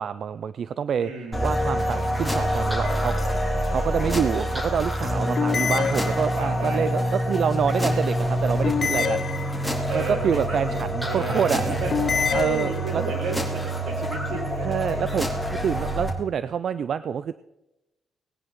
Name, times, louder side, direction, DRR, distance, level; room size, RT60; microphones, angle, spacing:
voice 1, 0.0-1.1 1.4-3.2 3.7-9.2 9.9-11.6 12.3-13.0 14.6-17.3, right 7 dB, 55° right, 15 dB, 0.4 m, -27 dB
voice 2, 1.0-1.5 2.8-4.3 6.4-6.9 9.9-15.2, right 2 dB, 85° right, -1 dB, 4.1 m, -33 dB
sound 1, 1.3-16.1, equal, ahead, 2.7 m, -26 dB
sound 2, 2.8-3.4 5.4-6.7 8.6-10.0 11.9-13.2, left 7 dB, 50° left, 0.4 m, -28 dB
19.0 x 9.8 x 3.7 m, 0.96 s
cardioid pair, 90°, 0 cm